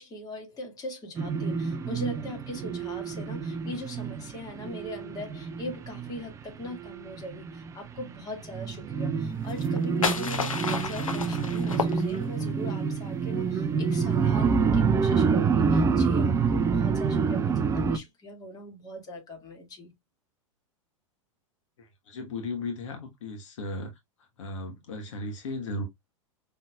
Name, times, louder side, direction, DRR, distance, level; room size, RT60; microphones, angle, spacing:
voice 1, 0.0-19.9, left 1 dB, 20° left, 1.9 m, -40 dB
sound 1, 1.2-8.1 8.4-18.0, right 5 dB, 15° right, 0.5 m, -27 dB
sound 2, 9.5-12.5, left 5 dB, 80° left, 0.8 m, -31 dB
voice 2, 22.1-23.9 24.4-25.8, left 2 dB, 65° left, 1.2 m, -35 dB
5.5 x 3.3 x 2.3 m
figure-of-eight pair, 95°, 17 cm